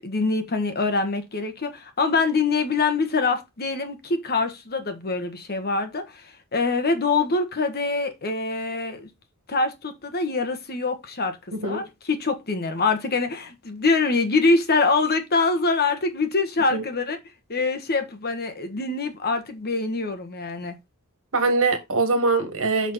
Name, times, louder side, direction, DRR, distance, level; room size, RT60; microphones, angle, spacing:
voice 1, 0.0-9.1 9.5-11.4 11.6-17.2 17.5-20.7, left 3 dB, 45° left, 1.4 m, -24 dB
voice 2, 11.5-11.8 16.7-16.8 21.3-22.9, right 3 dB, 65° right, 2.0 m, -22 dB
6.0 x 6.0 x 4.2 m
head